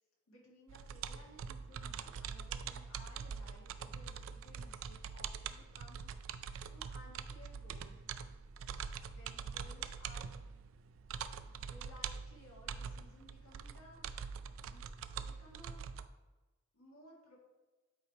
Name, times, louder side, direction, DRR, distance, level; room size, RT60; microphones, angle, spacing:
voice 1, 0.3-8.2 9.1-10.4 11.3-14.3 14.7-14.8 15.1-15.8 16.7-17.4, equal, 85° left, -3 dB, 1.8 m, -59 dB
sound 1, 0.7-16.1, right 6 dB, 70° right, 0.3 m, -44 dB
8.2 x 3.1 x 4.2 m, 1.2 s
head